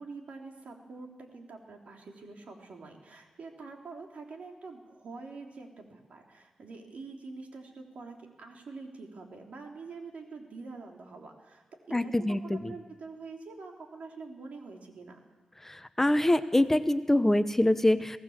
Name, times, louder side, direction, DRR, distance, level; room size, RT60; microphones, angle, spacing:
voice 1, 0.0-12.1 12.4-15.2, right 4 dB, 70° right, 2 dB, 3.5 m, -45 dB
voice 2, 11.9-12.7 15.6-18.2, left 1 dB, 15° left, 11 dB, 0.9 m, -25 dB
23.5 x 17.5 x 7.4 m, 1.2 s
cardioid pair, 65°, 2 cm